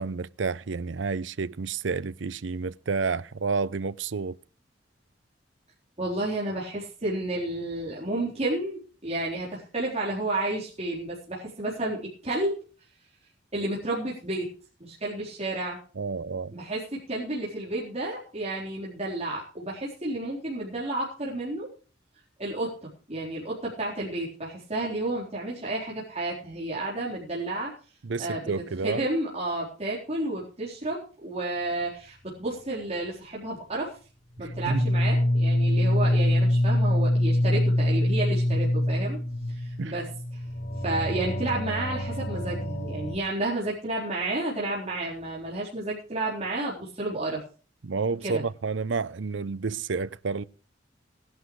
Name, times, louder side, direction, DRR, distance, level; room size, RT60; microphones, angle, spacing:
voice 1, 0.0-4.3 16.0-16.5 28.0-29.0 34.4-34.9 39.8-39.9 47.8-50.4, right 4 dB, 75° right, 0.6 m, -30 dB
voice 2, 6.0-12.6 13.5-14.5 14.8-15.8 16.5-21.7 22.4-27.7 28.2-34.0 34.4-39.2 39.5-40.1 40.3-40.4 40.8-47.4 48.2-48.4, right 2 dB, 35° right, 4.1 m, -31 dB
sound 1, 34.4-43.2, left 1 dB, 90° left, 4.5 m, -25 dB
18.5 x 11.5 x 3.2 m
head